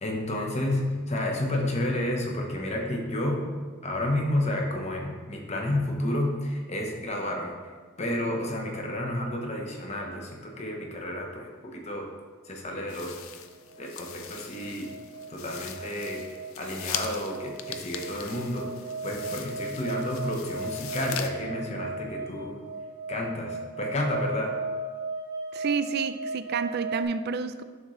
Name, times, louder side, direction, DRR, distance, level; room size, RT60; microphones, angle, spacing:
voice 1, 0.0-3.5 3.8-7.5 8.0-12.1 12.5-13.2 13.8-14.9 15.3-16.2 16.6-18.7 19.0-22.6 23.1-24.6, left 1 dB, 35° left, 1 dB, 0.9 m, -30 dB
sound 1, 12.9-21.3, left 9 dB, 90° left, 0.5 m, -40 dB
sound 2, 13.7-27.0, right 3 dB, 10° right, 1.2 m, -37 dB
voice 2, 25.5-27.6, right 5 dB, 50° right, 11 dB, 0.3 m, -29 dB
11.0 x 3.7 x 3.1 m, 1.5 s
head